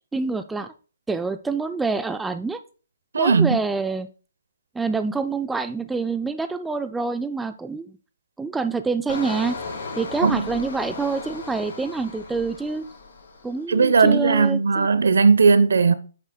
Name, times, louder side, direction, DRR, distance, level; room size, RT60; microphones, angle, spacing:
voice 1, 0.1-0.7 1.1-2.6 3.2-4.1 4.7-7.9 8.4-9.6 10.0-12.9 13.4-14.9, right 4 dB, 5° right, 0.3 m, -26 dB
voice 2, 3.1-3.6 10.2-10.5 13.7-16.0, right 4 dB, 85° right, 0.8 m, -17 dB
Engine, 9.1-13.7 14.1-14.5, left 4 dB, 55° left, 3.9 m, -36 dB
9.7 x 8.0 x 2.3 m
hypercardioid pair, 165°, 0 cm